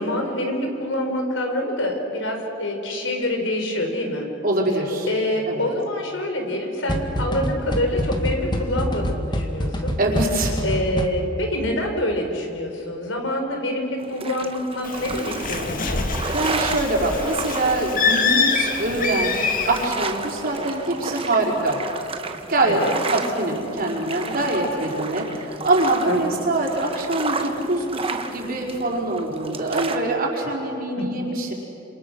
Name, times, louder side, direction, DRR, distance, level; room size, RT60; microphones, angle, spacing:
voice 1, 0.0-4.3 5.1-9.9 10.6-16.0 22.7-22.9 26.1-26.4 31.0-31.1, left 1 dB, 85° left, 3 dB, 4.6 m, -26 dB
voice 2, 4.4-5.1 5.5-5.7 10.0-10.5 16.3-21.8 22.5-22.8 23.1-31.5, right 2 dB, 50° right, -1 dB, 5.0 m, -24 dB
sound 1, 6.9-11.5, equal, 25° left, 1.8 m, -26 dB
sound 2, 14.0-30.0, right 4 dB, 30° right, 1.3 m, -33 dB
Bird, 14.8-19.8, left 4 dB, 45° left, 2.0 m, -25 dB
28.0 x 27.5 x 6.4 m, 2.9 s
head